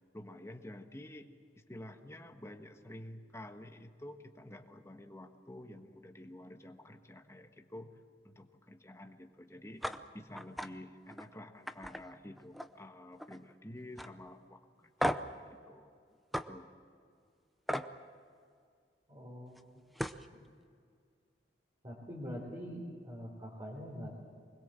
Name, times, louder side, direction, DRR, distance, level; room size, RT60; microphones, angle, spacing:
voice 1, 0.1-1.3 1.5-7.9 8.2-15.9 16.5-16.7, left 1 dB, 15° left, 5 dB, 1.3 m, -50 dB
sound 1, 9.8-10.0 10.3-10.7 11.1-11.3 11.7-12.8 13.1-13.5 14.0-14.1 15.0-15.4 16.3-16.5 17.7-17.9 19.6-19.7 19.9-20.2, equal, ahead, 0.6 m, -35 dB
voice 2, 19.1-19.7 20.3-20.4 21.8-24.1, equal, 30° right, -3 dB, 3.8 m, -44 dB
24.5 x 21.0 x 7.6 m, 2.2 s
head